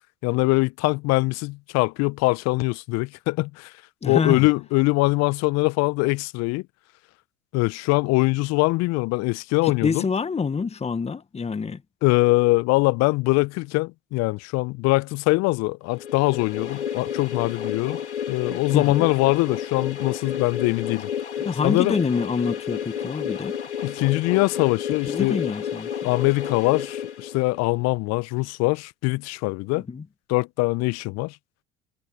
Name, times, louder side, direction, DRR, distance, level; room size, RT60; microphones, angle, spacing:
voice 1, 0.2-3.7 4.0-6.6 7.5-10.1 12.0-18.0 18.3-21.1 21.6-22.0 23.8-25.4 26.0-29.8 30.3-31.4, left 24 dB, 50° left, 1.3 m, -23 dB
voice 2, 4.0-4.5 9.6-11.8 18.7-19.0 21.4-23.5 25.1-26.1 29.7-30.0, left 5 dB, 20° left, 1.8 m, -26 dB
sound 1, 16.0-27.8, left 8 dB, 80° left, 4.9 m, -31 dB
figure-of-eight pair, 75°, 34 cm